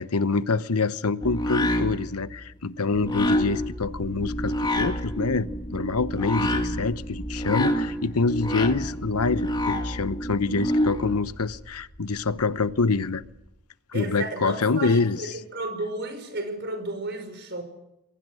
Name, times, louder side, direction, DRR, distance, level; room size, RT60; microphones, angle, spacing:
voice 1, 0.0-13.2 13.9-15.4, left 3 dB, 85° left, 1.0 m, -26 dB
sound 1, 1.2-11.2, equal, 20° left, 2.5 m, -28 dB
sound 2, 2.9-13.5, equal, 40° left, 7.9 m, -44 dB
voice 2, 13.9-17.6, right 2 dB, 50° right, 5.5 m, -33 dB
28.0 x 22.5 x 6.4 m
head